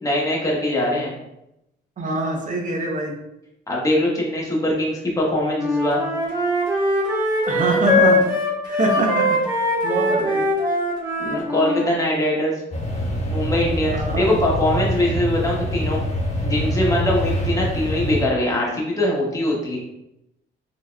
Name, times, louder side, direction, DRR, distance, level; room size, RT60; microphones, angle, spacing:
voice 1, 0.0-1.1 3.7-6.0 11.2-12.5 13.3-16.0 16.4-19.8, left 1 dB, 15° left, -3 dB, 1.1 m, -22 dB
voice 2, 2.0-3.2 7.5-10.4 13.9-14.3, right 2 dB, 40° right, 1 dB, 0.8 m, -24 dB
Wind instrument woodwind instrument, 5.5-11.8, left 1 dB, 20° right, 1.3 m, -21 dB
sound 1, 12.7-18.2, equal, 35° left, 0.9 m, -25 dB
4.2 x 2.8 x 2.3 m, 0.86 s
cardioid pair, 90°, 20 cm